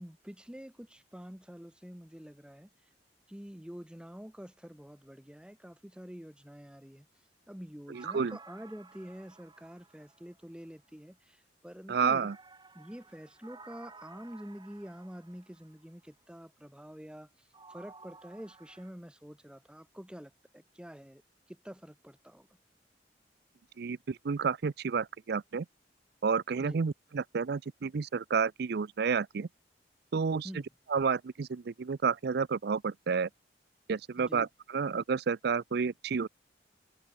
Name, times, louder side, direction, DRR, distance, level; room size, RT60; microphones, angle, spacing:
voice 1, 0.0-2.7 3.3-7.1 7.5-12.3 12.7-21.2 21.5-22.5 26.6-26.8 30.4-30.7 34.2-34.5, equal, 5° right, 1.1 m, -47 dB
sound 1, 7.9-10.8 12.0-15.9 17.5-18.9, right 4 dB, 25° right, 5.5 m, -55 dB
voice 2, 7.9-8.4 11.9-12.3 23.8-25.7 26.2-29.5 30.1-30.5 30.9-33.3 33.9-36.3, right 5 dB, 65° right, 0.5 m, -30 dB
head